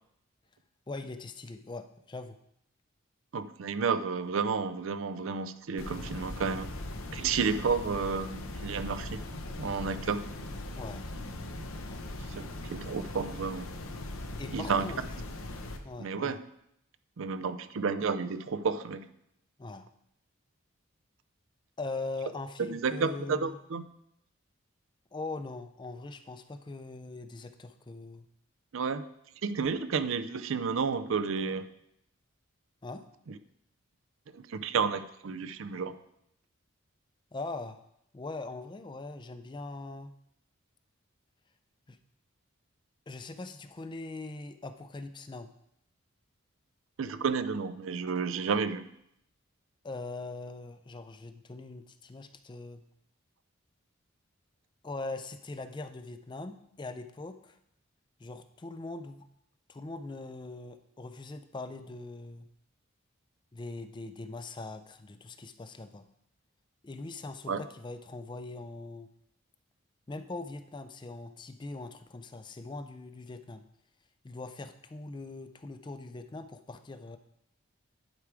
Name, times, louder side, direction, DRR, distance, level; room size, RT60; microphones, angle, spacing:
voice 1, 0.9-2.4 10.7-11.1 11.9-12.1 14.4-15.1 15.8-16.4 19.6-19.9 21.8-23.6 25.1-28.3 32.8-33.1 37.3-37.8 38.1-40.1 41.9-42.0 43.1-45.5 49.8-52.8 54.8-57.6 58.2-59.3 59.7-62.5 63.5-66.1 66.8-69.1 70.1-73.6 74.2-77.2, left 2 dB, 20° left, 10 dB, 0.4 m, -41 dB
voice 2, 3.3-6.7 7.1-9.2 9.6-10.3 12.6-13.7 14.5-14.9 16.0-16.4 17.2-19.1 22.7-23.8 28.7-29.0 29.4-31.7 34.3-36.0 47.0-48.8 67.5-67.6, right 5 dB, 75° right, 12 dB, 0.5 m, -31 dB
sound 1, 5.8-15.8, left 1 dB, 90° left, 0.9 m, -40 dB
10.5 x 4.7 x 4.8 m, 0.76 s
head